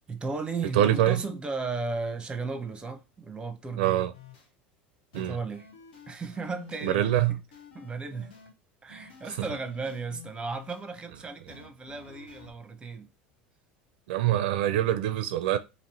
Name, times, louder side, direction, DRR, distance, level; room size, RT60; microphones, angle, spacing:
voice 1, 0.1-4.0 5.1-5.7 6.1-7.4 7.7-8.3 8.8-13.1, right 4 dB, 15° right, 0.7 m, -35 dB
voice 2, 0.7-1.2 3.8-4.1 5.1-5.4 6.8-7.4 14.1-15.6, right 12 dB, 75° right, 0.4 m, -24 dB
sound 1, 4.1-4.5 5.1-8.5 8.9-10.8 11.5-12.5, left 6 dB, 80° left, 1.2 m, -51 dB
2.9 x 2.9 x 4.2 m
hypercardioid pair, 95°, 5 cm